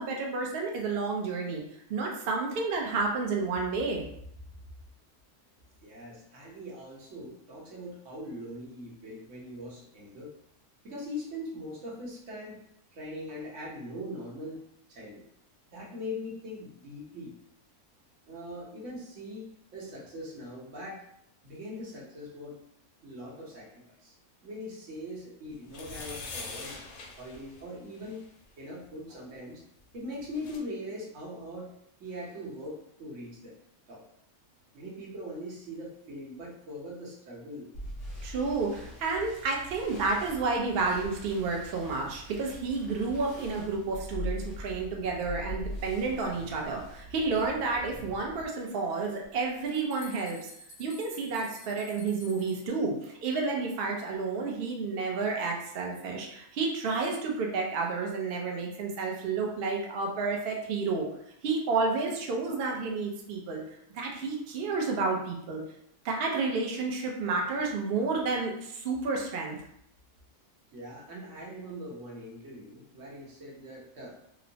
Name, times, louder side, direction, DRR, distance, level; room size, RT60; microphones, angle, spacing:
voice 1, 0.0-1.6 1.9-4.0 38.2-50.5 50.8-61.1 61.4-63.6 63.9-65.6 66.0-69.6, right 4 dB, 85° right, 0 dB, 0.5 m, -30 dB
voice 2, 5.8-10.3 10.8-12.6 12.9-14.6 14.9-15.2 15.7-17.3 18.2-21.0 21.4-22.6 23.0-24.1 24.4-26.8 27.2-28.2 28.6-29.6 29.9-31.7 32.0-33.5 33.9-34.0 34.7-37.7 70.7-74.2, left 1 dB, 60° right, -4 dB, 1.1 m, -41 dB
sound 1, 25.6-28.3 29.9-30.0 30.2-30.6, left 3 dB, 75° left, 1.0 m, -43 dB
sound 2, 37.7-48.4, equal, 60° left, 1.1 m, -42 dB
sound 3, 49.2-49.3 49.6-52.7, equal, 30° left, 0.8 m, -51 dB
2.9 x 2.0 x 2.6 m, 0.72 s
omnidirectional pair, 1.6 m